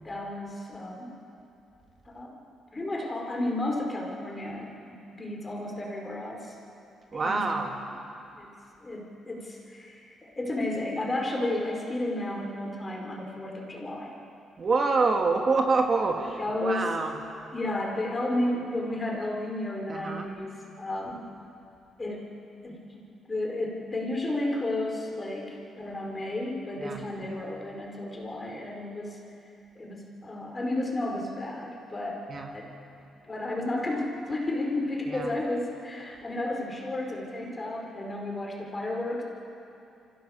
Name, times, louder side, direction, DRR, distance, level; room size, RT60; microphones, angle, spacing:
voice 1, 0.0-1.2 2.0-2.4 2.7-6.5 7.1-7.6 8.3-8.5 8.8-14.1 16.4-17.1 17.5-21.2 22.0-22.3 22.6-23.0 23.3-29.2 29.7-32.2 32.5-32.7 33.2-39.2, left 1 dB, 25° left, 0 dB, 4.7 m, -32 dB
voice 2, 7.1-7.7 14.6-17.1 19.9-20.2 26.8-27.0 32.3-32.5 35.1-35.3, right 4 dB, 40° right, 3 dB, 1.8 m, -26 dB
25.5 x 15.5 x 7.3 m, 2.7 s
cardioid pair, 90°, 0 cm